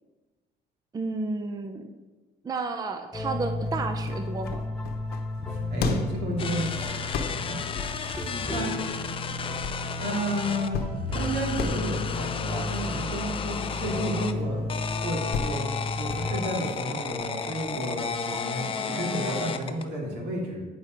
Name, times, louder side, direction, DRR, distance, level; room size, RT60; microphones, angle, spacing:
voice 1, 0.9-2.0 2.4-4.6 18.3-18.4 18.9-19.4, right 3 dB, 20° right, 6 dB, 0.5 m, -32 dB
sound 1, 3.1-16.4, left 2 dB, 5° left, 1.2 m, -33 dB
sound 2, 3.6-18.3, left 4 dB, 70° left, 0.9 m, -38 dB
voice 2, 5.5-7.6 7.9-8.7 10.0-14.6 15.0-15.6 16.0-20.6, right 1 dB, 80° right, -1 dB, 2.4 m, -32 dB
sound 3, 6.4-10.7 11.1-14.3 14.7-19.9, left 6 dB, 30° left, 0.5 m, -33 dB
9.5 x 4.2 x 5.1 m, 1.2 s
cardioid pair, 110°, 17 cm